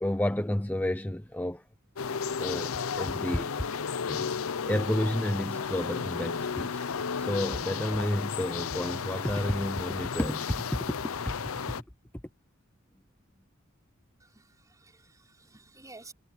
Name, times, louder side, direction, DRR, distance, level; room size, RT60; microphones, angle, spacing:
voice 1, 0.0-1.6 2.4-3.8 4.1-11.4, left 1 dB, 10° left, 0.8 m, -31 dB
sound 1, 2.0-11.8, left 6 dB, 85° left, 0.7 m, -33 dB
voice 2, 14.2-16.1, right 3 dB, 15° right, 5.3 m, -52 dB
head